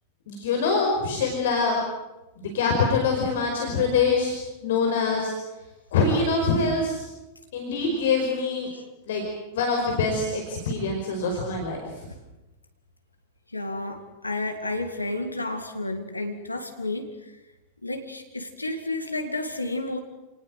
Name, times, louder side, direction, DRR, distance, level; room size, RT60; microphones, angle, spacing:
voice 1, 0.3-1.8 2.4-4.4 4.6-5.3 5.9-7.0 7.5-8.7 9.1-9.2 9.5-11.8, left 4 dB, 60° left, 1 dB, 5.2 m, -24 dB
voice 2, 13.5-17.1 17.8-20.0, left 2 dB, 85° left, 7 dB, 2.2 m, -31 dB
29.5 x 19.0 x 8.0 m, 1.0 s
figure-of-eight pair, 90°, 0 cm